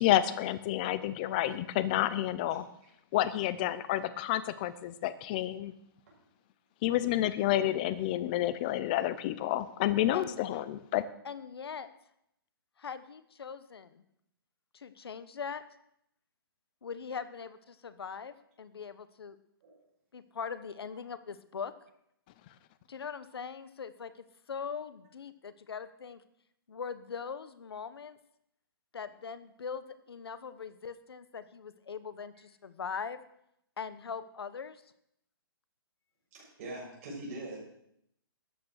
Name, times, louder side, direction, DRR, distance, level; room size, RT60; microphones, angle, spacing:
voice 1, 0.0-2.7 3.1-5.7 6.8-11.1, left 13 dB, 20° left, 15 dB, 0.6 m, -29 dB
voice 2, 11.2-11.9 12.8-14.0 14.7-15.6 16.8-19.4 20.1-21.7 22.9-26.2 26.7-28.2 28.9-33.2 33.8-34.8, left 6 dB, 90° left, 13 dB, 1.2 m, -41 dB
voice 3, 36.3-37.7, right 2 dB, 30° right, -4 dB, 6.7 m, -42 dB
13.5 x 8.8 x 6.5 m, 0.76 s
hypercardioid pair, 170°, 13 cm